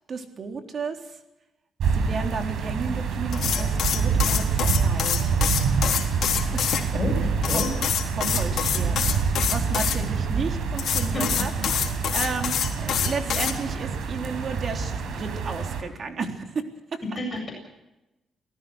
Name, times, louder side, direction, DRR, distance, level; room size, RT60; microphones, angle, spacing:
voice 1, 0.1-1.2 1.9-5.4 6.5-6.6 7.5-7.7 8.1-9.0 9.2-11.5 11.8-16.6 16.9-17.2, right 4 dB, 40° right, 4 dB, 3.5 m, -33 dB
sound 1, 1.8-15.8, right 5 dB, 75° right, 4.5 m, -26 dB
sound 2, 3.3-6.8 7.4-10.0 10.8-13.5, left 9 dB, 65° left, 3.9 m, -26 dB
voice 2, 6.9-7.7 11.1-11.4 17.2-17.5, left 2 dB, 25° left, 1 dB, 7.7 m, -29 dB
28.5 x 18.0 x 6.4 m, 0.98 s
cardioid pair, 135°, 0 cm